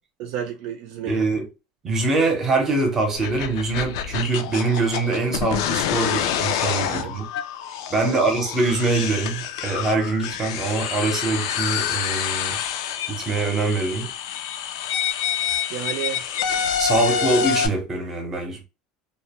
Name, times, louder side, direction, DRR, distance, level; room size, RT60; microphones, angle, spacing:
voice 1, 0.2-1.2 6.9-7.2 8.0-8.2 15.7-16.3 16.9-17.3, right 9 dB, 55° right, 0.4 m, -32 dB
voice 2, 1.1-1.5 1.8-7.3 7.9-12.6 13.1-14.1 16.8-18.6, right 3 dB, 20° right, 0.7 m, -23 dB
sound 1, 3.1-17.7, left 8 dB, 80° left, 0.4 m, -27 dB
2.4 x 2.1 x 2.9 m
cardioid pair, 165°, 2 cm